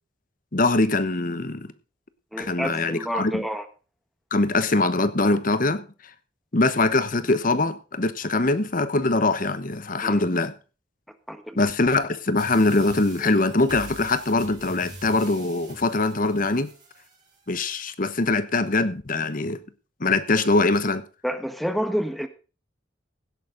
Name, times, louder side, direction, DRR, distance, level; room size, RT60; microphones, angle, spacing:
voice 1, 0.5-1.7 2.4-3.4 4.3-5.8 6.5-10.5 11.6-16.7 17.5-19.6 20.0-21.0, left 2 dB, 45° left, 1.0 m, -22 dB
voice 2, 2.3-3.6 10.0-10.3 11.3-11.7 21.2-22.3, equal, ahead, 1.3 m, -29 dB
sound 1, 12.4-17.4, right 2 dB, 25° right, 6.0 m, -43 dB
16.5 x 10.5 x 3.9 m
head